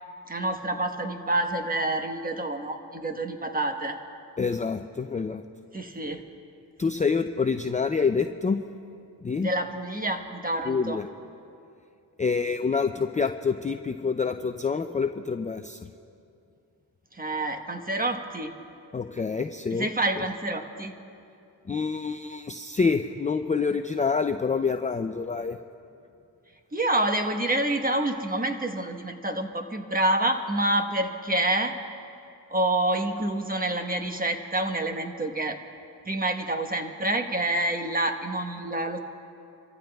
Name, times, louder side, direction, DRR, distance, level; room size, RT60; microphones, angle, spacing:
voice 1, 0.3-4.0 5.7-6.2 9.4-11.0 17.1-18.5 19.7-20.9 26.7-31.7 32.5-35.6 36.0-39.0, right 1 dB, 20° right, 5 dB, 1.3 m, -27 dB
voice 2, 4.4-5.4 6.8-8.6 9.2-9.5 10.6-11.1 12.2-15.9 18.9-19.9 20.2-20.3 21.7-25.6, left 5 dB, 20° left, 7 dB, 0.5 m, -27 dB
29.0 x 14.5 x 2.4 m, 2.6 s
cardioid pair, 65°, 43 cm